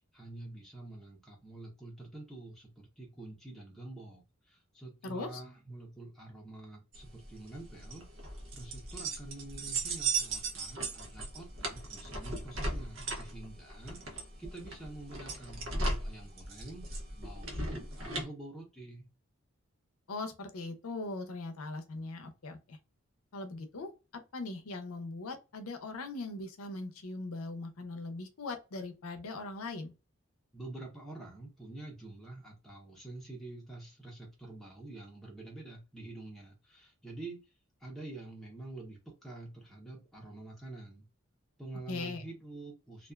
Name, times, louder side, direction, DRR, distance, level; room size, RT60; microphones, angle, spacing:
voice 1, 0.1-8.1 8.5-19.1 30.5-37.4 37.8-41.1 41.6-43.1, right 2 dB, ahead, 0.6 m, -47 dB
voice 2, 5.0-5.4 20.1-22.8 23.3-23.9 24.3-29.9 41.9-42.2, left 3 dB, 90° left, 0.6 m, -40 dB
sound 1, 6.9-18.2, right 3 dB, 65° right, 0.8 m, -37 dB
2.4 x 2.2 x 2.2 m
head